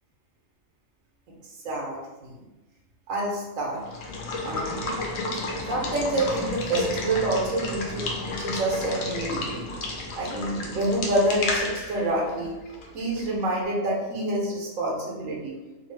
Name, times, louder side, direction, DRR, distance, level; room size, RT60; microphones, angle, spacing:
voice 1, 1.6-2.4 3.1-3.8 4.4-5.0 5.6-9.7 10.2-12.5 12.9-15.5, right 1 dB, 75° right, -2 dB, 1.0 m, -27 dB
Water / Water tap faucet / Liquid, 3.8-13.4, left 2 dB, 75° left, 0.9 m, -32 dB
2.6 x 2.3 x 3.2 m, 1.1 s
omnidirectional pair, 1.4 m